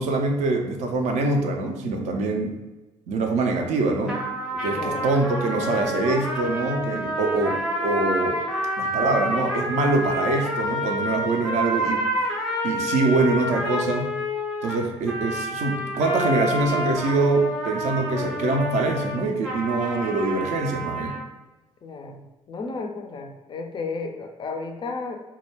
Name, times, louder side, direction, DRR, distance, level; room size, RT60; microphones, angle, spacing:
voice 1, 0.0-2.6 3.1-4.2 4.6-8.4 8.8-12.1 12.6-14.1 14.6-21.2, right 2 dB, 50° right, 3 dB, 0.4 m, -24 dB
sound 1, 4.1-21.2, equal, 5° right, 0.7 m, -28 dB
voice 2, 4.7-5.1 21.8-25.2, left 4 dB, 30° left, 4 dB, 0.4 m, -33 dB
2.2 x 2.1 x 3.2 m, 1.1 s
figure-of-eight pair, 45°, 16 cm